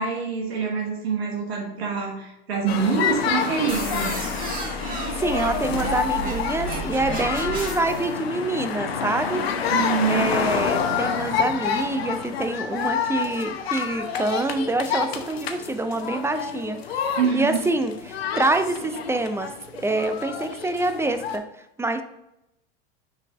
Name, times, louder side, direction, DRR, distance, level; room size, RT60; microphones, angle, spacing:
voice 1, 0.0-4.1 9.7-10.4 17.2-17.6, right 6 dB, 80° right, -2 dB, 1.4 m, -25 dB
sound 1, 2.7-21.4, left 7 dB, 80° left, 0.8 m, -28 dB
sound 2, 3.7-8.1, right 2 dB, 25° right, 2.1 m, -32 dB
voice 2, 5.2-9.4 10.1-21.4 21.8-22.0, right 2 dB, 10° right, 8 dB, 0.4 m, -26 dB
6.4 x 4.1 x 3.6 m, 0.88 s
hypercardioid pair, 85°, 30 cm